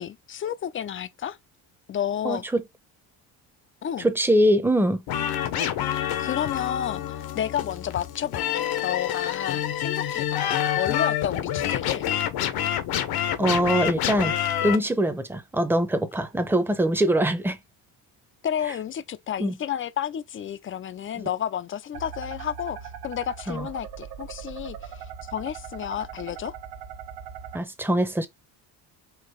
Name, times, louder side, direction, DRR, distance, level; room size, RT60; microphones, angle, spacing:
voice 1, 0.0-1.4 1.9-2.4 3.8-4.1 6.2-10.5 10.7-12.1 18.4-26.6, left 9 dB, 30° left, 0.5 m, -31 dB
voice 2, 2.2-2.6 4.0-5.0 13.4-14.4 14.6-17.6 19.4-19.6 21.2-21.3 23.5-23.7 27.5-28.3, right 1 dB, 5° right, 0.8 m, -23 dB
sound 1, 5.1-14.8, left 10 dB, 65° left, 1.0 m, -27 dB
sound 2, 21.9-27.6, right 8 dB, 65° right, 1.0 m, -40 dB
4.7 x 2.9 x 3.2 m
cardioid pair, 105°, 39 cm